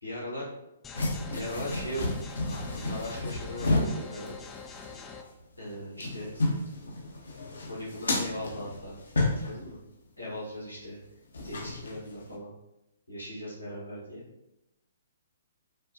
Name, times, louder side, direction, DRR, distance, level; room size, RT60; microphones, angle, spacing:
voice 1, 0.0-0.5 1.3-2.2 2.7-4.4 5.6-6.3 7.6-9.0 9.3-9.8 10.2-11.0 11.4-12.5 13.1-14.2, left 1 dB, 90° left, -6 dB, 1.4 m, -38 dB
sound 1, 0.8-5.2, left 5 dB, 15° left, 0.4 m, -45 dB
sound 2, 0.9-5.0 5.2-5.3 5.7-9.7 11.3-12.3, left 2 dB, 70° left, 0.8 m, -32 dB
5.4 x 2.2 x 2.6 m, 0.91 s
figure-of-eight pair, 125°, 0 cm